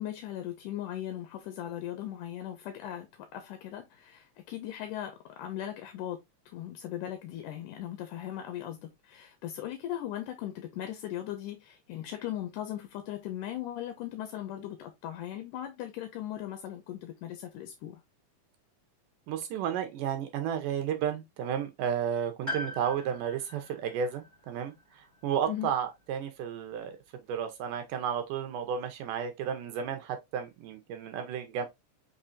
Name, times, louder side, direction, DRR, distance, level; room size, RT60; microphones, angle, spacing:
voice 1, 0.0-6.2 6.5-18.0 25.5-25.7, left 12 dB, 80° left, 2.1 m, -38 dB
voice 2, 19.3-24.7 25.2-27.0 27.3-31.7, right 8 dB, 75° right, 2.3 m, -32 dB
Piano, 22.5-26.3 26.6-26.7 27.8-27.9, left 1 dB, 15° right, 0.9 m, -42 dB
5.6 x 3.4 x 2.5 m
omnidirectional pair, 4.0 m